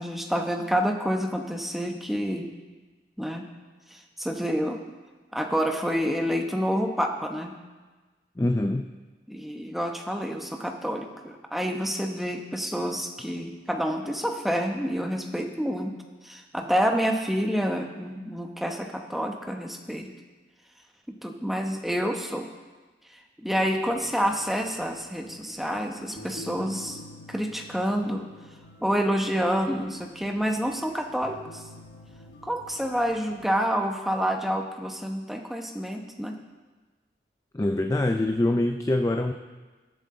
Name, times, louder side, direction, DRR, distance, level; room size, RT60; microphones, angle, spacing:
voice 1, 0.0-2.5 3.2-3.5 3.9-4.8 5.3-7.6 9.3-15.9 16.2-20.1 21.1-22.4 23.4-27.0 27.3-28.3 28.8-31.6 32.4-36.4, equal, ahead, 3 dB, 0.9 m, -28 dB
voice 2, 8.4-8.9 37.5-39.3, left 1 dB, 15° left, 5 dB, 0.4 m, -24 dB
sound 1, 23.6-33.5, left 1 dB, 85° left, 1.1 m, -48 dB
21.0 x 7.8 x 3.8 m, 1.3 s
head